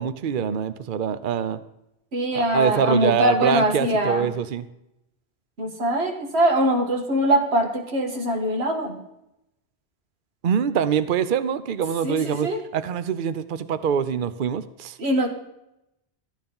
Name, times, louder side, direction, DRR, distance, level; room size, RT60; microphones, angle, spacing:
voice 1, 0.0-1.6 2.3-4.6 10.4-15.0, right 7 dB, 55° right, 13 dB, 0.8 m, -24 dB
voice 2, 2.1-4.3 5.6-9.0 12.0-12.6 15.0-15.3, right 1 dB, 70° right, 3 dB, 1.9 m, -22 dB
13.5 x 9.3 x 5.4 m, 0.86 s
omnidirectional pair, 1.1 m